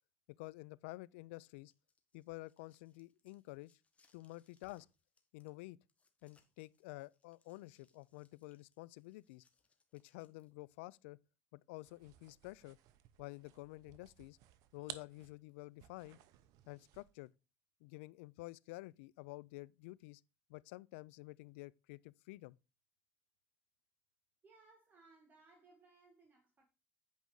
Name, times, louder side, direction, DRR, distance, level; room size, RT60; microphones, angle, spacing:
voice 1, 0.4-1.7 2.1-3.7 4.1-4.9 5.3-5.8 6.2-9.4 9.9-11.2 11.5-12.8 13.2-14.4 14.7-16.2 16.7-17.3 17.8-20.2 20.5-22.6, left 21 dB, 85° left, 0.4 m, -50 dB
sound 1, 1.5-10.8, left 4 dB, 20° left, 1.5 m, -76 dB
sound 2, 11.8-17.2, right 12 dB, 65° right, 0.8 m, -56 dB
voice 2, 24.4-26.7, right 3 dB, 30° right, 1.8 m, -65 dB
8.4 x 5.2 x 4.6 m
supercardioid pair, 110°, 6 cm